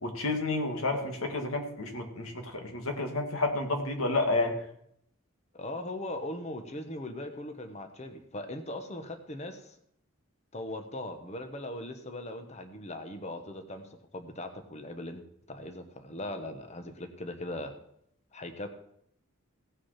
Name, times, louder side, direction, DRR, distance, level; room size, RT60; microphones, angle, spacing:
voice 1, 0.0-4.5, left 2 dB, 80° left, 4 dB, 2.1 m, -30 dB
voice 2, 5.5-9.7 10.5-15.2 15.5-17.7 18.3-18.7, left 1 dB, 30° left, 7 dB, 1.1 m, -39 dB
16.5 x 6.1 x 5.8 m, 0.71 s
head